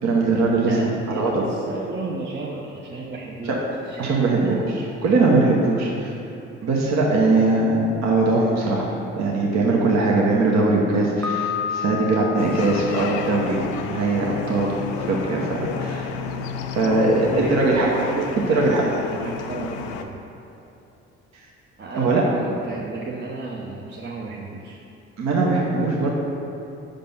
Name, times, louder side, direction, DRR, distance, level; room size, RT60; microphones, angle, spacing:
voice 1, 0.0-1.4 3.4-3.5 4.0-4.6 5.0-6.1 6.6-8.9 9.2-13.6 13.9-16.1 16.8-17.9 18.4-18.8 21.9-22.2 25.2-26.1, right 3 dB, 55° right, -3 dB, 1.1 m, -20 dB
voice 2, 0.6-3.6 3.8-4.6 8.6-8.7 16.8-20.2 21.8-24.8, right 3 dB, 35° right, -3 dB, 0.8 m, -32 dB
Piano, 11.2-14.1, left 8 dB, 10° left, 0.5 m, -31 dB
sound 1, 12.4-20.0, left 6 dB, 85° left, 0.5 m, -31 dB
5.3 x 5.2 x 5.6 m, 3.0 s
hypercardioid pair, 55°, 32 cm